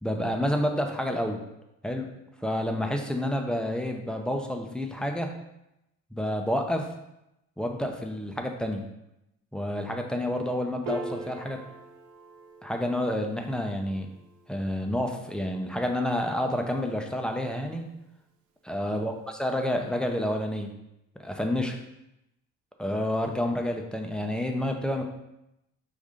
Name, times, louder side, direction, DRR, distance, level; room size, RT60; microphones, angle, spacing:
voice 1, 0.0-1.4 1.8-2.1 2.4-5.3 6.1-6.9 7.6-8.8 9.5-11.6 12.6-14.1 14.5-17.9 18.7-20.7 21.2-21.8 22.8-25.0, left 1 dB, 5° left, 3 dB, 0.5 m, -29 dB
Piano, 10.9-17.5, right 1 dB, 85° right, 0.8 m, -44 dB
5.0 x 2.7 x 3.6 m, 0.86 s
cardioid pair, 90°, 30 cm